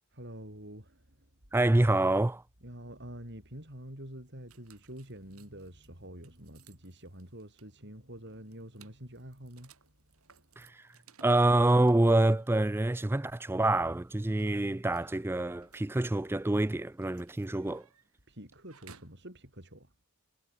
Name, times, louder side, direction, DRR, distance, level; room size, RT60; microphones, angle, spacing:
voice 1, 0.1-1.2 2.6-9.7 18.3-19.9, right 1 dB, 50° right, 6.7 m, -47 dB
voice 2, 1.5-2.4 10.6-10.7 11.2-17.8, right 2 dB, 10° right, 0.3 m, -26 dB
sound 1, 4.5-19.2, right 5 dB, 75° right, 5.3 m, -62 dB
head